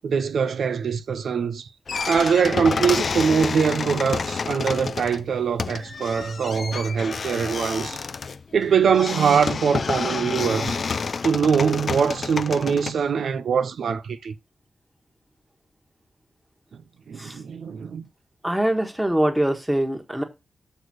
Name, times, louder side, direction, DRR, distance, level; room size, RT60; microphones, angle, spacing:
voice 1, 0.0-1.7 2.0-8.0 8.5-10.8 11.2-14.3 17.1-18.1, right 6 dB, 85° right, 0.6 m, -23 dB
sound 1, 1.9-12.9, left 5 dB, 55° left, 0.5 m, -29 dB
voice 2, 18.4-20.2, right 1 dB, 10° right, 1.4 m, -23 dB
6.7 x 4.4 x 6.3 m
wide cardioid pair, 125°, 0 cm